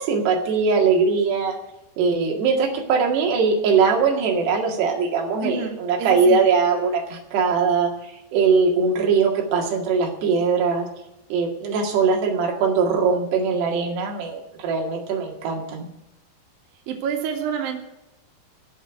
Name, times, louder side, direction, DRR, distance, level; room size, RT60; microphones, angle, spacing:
voice 1, 0.0-1.6 2.0-10.9 11.3-15.9, right 5 dB, 90° right, 1 dB, 4.1 m, -21 dB
voice 2, 5.4-6.4 16.9-17.8, right 7 dB, 65° right, 3 dB, 3.4 m, -28 dB
14.5 x 6.8 x 9.9 m, 0.89 s
omnidirectional pair, 4.7 m